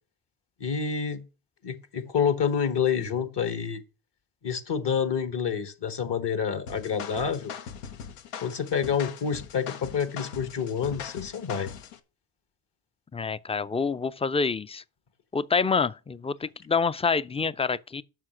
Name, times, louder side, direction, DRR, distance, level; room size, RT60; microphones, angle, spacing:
voice 1, 0.6-1.2 1.6-3.8 4.4-7.5 8.4-11.7, left 7 dB, 55° left, 1.4 m, -28 dB
sound 1, 6.7-12.0, left 7 dB, 85° left, 0.9 m, -40 dB
voice 2, 13.1-14.8 15.3-18.0, left 5 dB, 15° left, 0.4 m, -27 dB
7.4 x 5.7 x 6.1 m
supercardioid pair, 50°, 50 cm